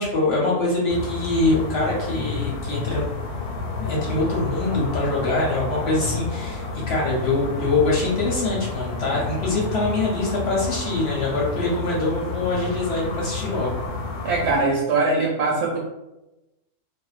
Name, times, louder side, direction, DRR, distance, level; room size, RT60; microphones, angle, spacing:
voice 1, 0.0-3.1 3.8-13.7, left 2 dB, 55° left, -4 dB, 0.7 m, -24 dB
sound 1, 0.9-14.6, left 4 dB, 85° left, 1.1 m, -30 dB
voice 2, 14.2-15.8, right 3 dB, 80° right, -3 dB, 1.1 m, -21 dB
2.5 x 2.1 x 2.4 m, 0.97 s
omnidirectional pair, 1.6 m